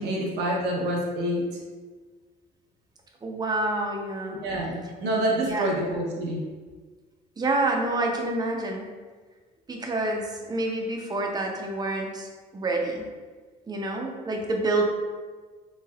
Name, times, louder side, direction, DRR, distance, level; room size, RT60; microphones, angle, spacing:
voice 1, 0.0-1.6 4.4-6.5, right 1 dB, 80° right, -2 dB, 0.8 m, -27 dB
voice 2, 3.2-4.4 5.4-5.7 7.4-8.9 9.7-13.0 13.7-14.8, right 2 dB, 25° right, 1 dB, 0.5 m, -28 dB
3.5 x 3.3 x 2.3 m, 1.4 s
cardioid pair, 110°, 17 cm